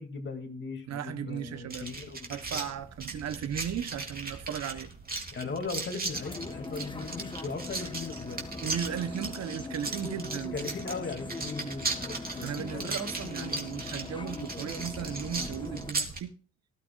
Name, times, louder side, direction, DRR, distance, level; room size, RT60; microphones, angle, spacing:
voice 1, 0.0-2.6 5.3-8.4 10.5-12.9 13.3-13.6, left 4 dB, 40° left, 2.7 m, -38 dB
voice 2, 0.9-1.9 2.3-4.9 8.6-10.5 12.4-16.3, right 9 dB, 60° right, 1.0 m, -36 dB
sound 1, 1.7-16.2, right 3 dB, 30° right, 3.1 m, -38 dB
sound 2, 6.1-15.9, left 3 dB, 15° left, 1.3 m, -41 dB
18.5 x 12.5 x 2.5 m
cardioid pair, 90°, 30 cm